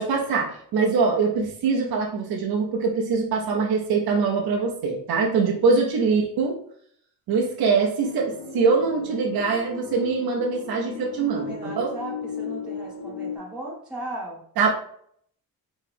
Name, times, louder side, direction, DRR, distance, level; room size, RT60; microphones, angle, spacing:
voice 1, 0.0-6.6 7.3-11.9 14.6-14.7, right 4 dB, 85° right, -1 dB, 0.8 m, -23 dB
sound 1, 8.0-13.4, left 5 dB, 90° left, 0.7 m, -36 dB
voice 2, 11.1-14.4, right 1 dB, 5° right, -5 dB, 0.8 m, -37 dB
4.6 x 3.2 x 3.4 m, 0.65 s
wide cardioid pair, 150°, 36 cm